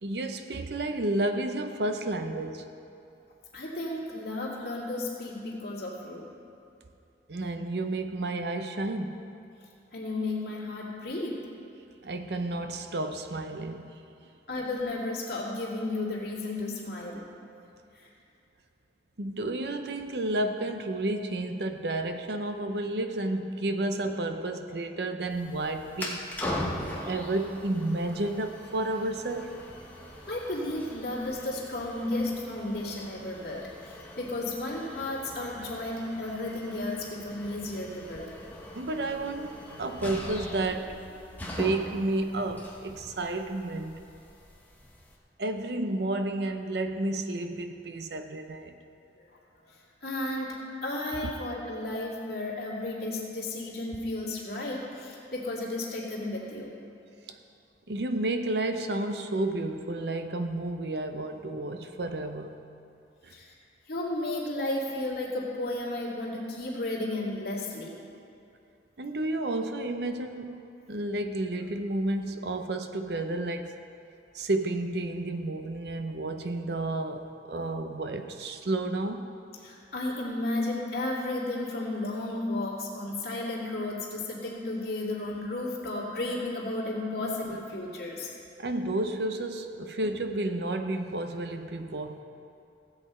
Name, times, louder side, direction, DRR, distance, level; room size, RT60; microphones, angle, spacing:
voice 1, 0.0-2.7 7.3-9.3 12.0-14.0 19.2-26.3 27.1-29.6 38.7-41.0 41.4-44.0 45.4-48.8 57.3-57.4 57.9-62.6 63.2-63.3 69.0-73.7 74.3-79.3 88.6-92.2, right 2 dB, 65° right, 7 dB, 0.7 m, -31 dB
voice 2, 3.5-6.3 9.9-11.4 14.5-17.3 17.9-18.1 30.3-38.3 49.2-49.3 49.7-56.8 63.3-63.5 63.9-67.9 79.6-88.3, left 2 dB, 60° left, -4 dB, 2.4 m, -33 dB
sound 1, 25.3-45.2, left 1 dB, 10° left, 1.2 m, -41 dB
16.0 x 8.3 x 4.3 m, 2.6 s
head